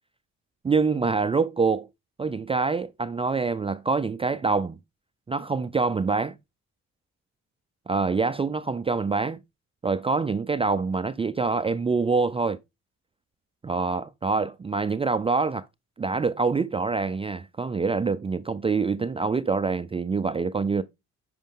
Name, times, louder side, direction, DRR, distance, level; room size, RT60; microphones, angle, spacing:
voice 1, 0.6-1.9 2.2-4.8 5.3-6.4 7.9-9.4 9.8-12.6 13.6-15.7 16.0-20.8, right 4 dB, 20° right, 0.4 m, -25 dB
8.9 x 5.3 x 3.7 m
cardioid pair, 90°, 30 cm